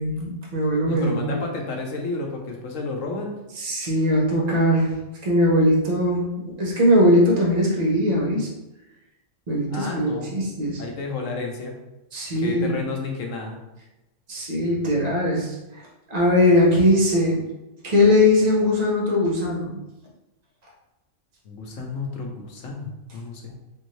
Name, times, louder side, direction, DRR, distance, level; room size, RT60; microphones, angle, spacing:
voice 1, 0.0-1.4 3.6-4.9 5.2-6.2 6.6-8.5 9.5-10.8 12.1-12.8 14.3-15.5 16.1-17.4 17.8-19.8, left 1 dB, 35° right, -3 dB, 1.0 m, -20 dB
voice 2, 0.8-3.3 9.7-10.3 10.8-11.7 12.3-13.6 21.4-23.5, left 3 dB, 80° left, 1 dB, 1.2 m, -31 dB
4.4 x 2.6 x 3.1 m, 0.96 s
omnidirectional pair, 1.3 m